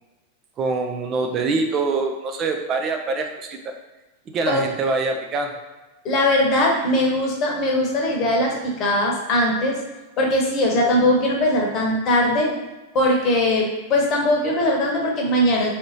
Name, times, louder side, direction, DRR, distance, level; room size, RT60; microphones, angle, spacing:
voice 1, 0.6-3.6 4.3-5.5, right 3 dB, 30° right, 4 dB, 0.4 m, -24 dB
voice 2, 6.0-9.8 10.2-12.5 12.9-15.7, left 1 dB, 35° left, -1 dB, 1.0 m, -20 dB
3.5 x 2.7 x 4.1 m, 1.1 s
figure-of-eight pair, 90°, 0 cm